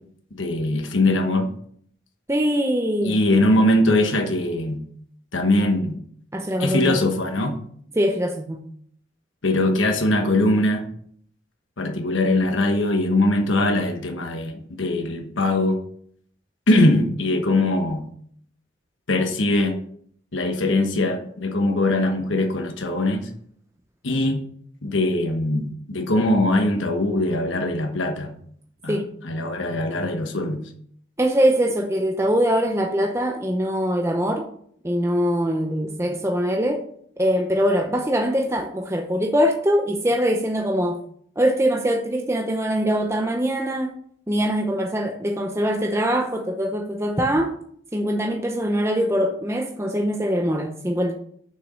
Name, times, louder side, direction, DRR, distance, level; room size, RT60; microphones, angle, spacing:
voice 1, 0.3-1.5 3.0-4.8 5.3-6.0 6.6-7.6 9.4-10.8 11.8-15.8 16.7-18.0 19.1-19.8 20.3-23.3 24.0-24.4 24.8-28.3 28.8-30.6, left 1 dB, 75° left, 4 dB, 1.2 m, -21 dB
voice 2, 2.3-3.2 6.3-7.0 8.0-8.6 28.9-29.1 31.2-34.5 34.8-36.9 37.2-41.0 41.4-44.0 44.3-47.5 47.9-51.1, equal, 15° right, 3 dB, 0.7 m, -22 dB
6.8 x 6.4 x 6.3 m, 0.63 s
head